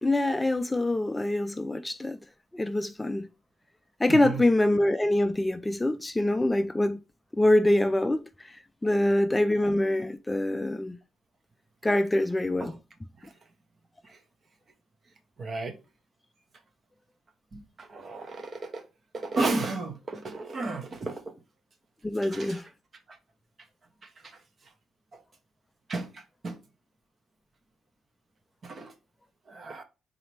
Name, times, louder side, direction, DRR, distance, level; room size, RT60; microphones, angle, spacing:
voice 1, 0.0-2.2 2.5-3.3 4.0-7.0 7.4-11.0 11.8-12.7 22.0-22.7, left 1 dB, 15° left, 0.3 m, -25 dB
voice 2, 4.1-4.4 12.6-12.8 13.2-13.3 14.0-14.2 15.4-15.7 17.5-18.8 19.1-21.3 22.2-22.6 23.1-23.2 24.0-24.4 25.1-25.2 25.9-26.6 28.6-28.9 29.5-29.8, right 3 dB, 45° right, 0.9 m, -34 dB
4.0 x 3.0 x 3.2 m
cardioid pair, 90°, 0 cm